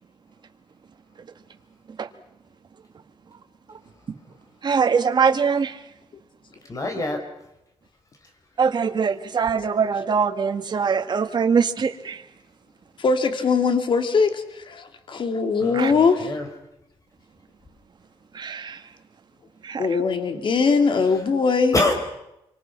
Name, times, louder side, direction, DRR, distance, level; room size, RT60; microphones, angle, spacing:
voice 1, 4.6-5.8 8.6-12.2 15.7-15.9 18.3-18.8 19.6-20.0, right 6 dB, 45° right, 1.8 m, -22 dB
voice 2, 6.7-7.2 15.6-16.5 21.7-21.9, left 2 dB, 30° left, 4.8 m, -25 dB
voice 3, 13.0-16.3 19.8-21.8, left 4 dB, 55° left, 2.5 m, -21 dB
27.5 x 25.0 x 5.9 m
cardioid pair, 120°, 10 cm